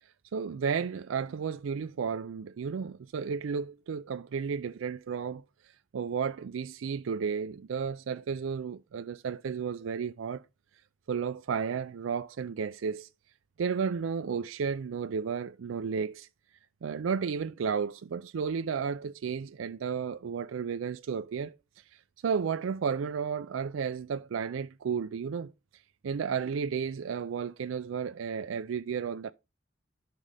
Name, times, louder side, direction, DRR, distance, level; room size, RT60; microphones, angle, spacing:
voice 1, 0.3-5.4 5.9-10.4 11.1-13.1 13.6-16.3 16.8-21.6 22.2-25.5 26.0-29.3, right 6 dB, 85° right, 0.4 m, -33 dB
11.0 x 5.4 x 3.3 m
head